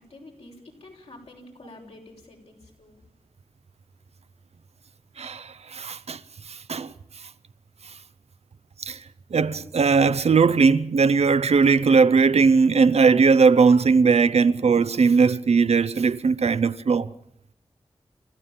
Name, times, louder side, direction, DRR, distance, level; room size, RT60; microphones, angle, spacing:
voice 1, 0.0-3.0, left 2 dB, 70° left, 6.4 m, -47 dB
voice 2, 5.2-6.2 6.5-6.9 8.8-9.0 9.3-17.1, right 5 dB, 75° right, 0.8 m, -19 dB
29.5 x 14.0 x 7.4 m
cardioid pair, 45°, 11 cm